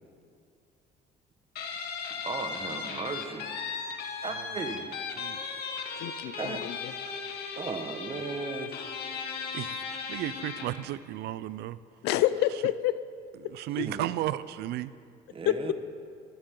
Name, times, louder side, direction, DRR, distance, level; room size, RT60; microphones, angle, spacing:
Guitar, 1.6-10.8, left 5 dB, 65° left, 2.5 m, -37 dB
voice 1, 2.1-3.5 4.2-4.9 6.4-6.6 7.6-8.8 13.8-14.0 15.3-15.7, right 4 dB, 35° right, 1.5 m, -36 dB
voice 2, 6.0-6.9 12.0-12.9 15.5-15.7, left 14 dB, 85° left, 0.7 m, -27 dB
voice 3, 9.5-11.8 13.4-14.9, right 14 dB, 80° right, 0.5 m, -34 dB
23.5 x 15.5 x 3.9 m
cardioid pair, 110°, 17 cm